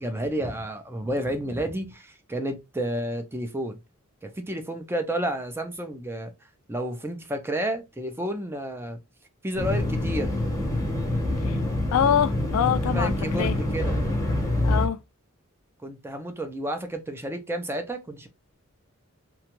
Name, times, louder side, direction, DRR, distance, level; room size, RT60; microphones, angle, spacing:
voice 1, 0.0-3.8 4.2-6.3 6.7-9.0 9.4-10.3 12.9-14.0 15.8-18.3, right 1 dB, 10° right, 0.4 m, -31 dB
sound 1, 9.6-14.9, left 1 dB, 15° left, 0.7 m, -26 dB
voice 2, 11.9-13.6 14.6-15.0, left 8 dB, 85° left, 0.3 m, -24 dB
2.9 x 2.3 x 2.9 m
head